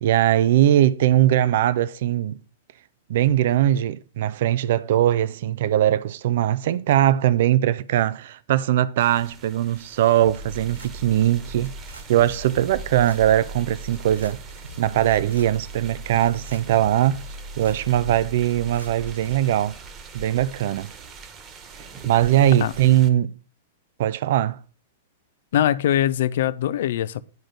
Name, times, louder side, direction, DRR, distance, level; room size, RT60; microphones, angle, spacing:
voice 1, 0.0-2.4 3.1-11.7 12.1-14.4 14.8-17.2 17.6-19.8 20.1-20.9 21.8-23.3 24.0-24.6, right 12 dB, 55° right, 0.6 m, -20 dB
sound 1, 9.0-23.1, right 5 dB, 30° right, 1.6 m, -43 dB
sound 2, 10.2-19.4, equal, 85° right, 1.5 m, -39 dB
voice 2, 25.5-27.2, left 11 dB, 60° left, 0.6 m, -22 dB
10.5 x 5.1 x 6.0 m
figure-of-eight pair, 105°, 0 cm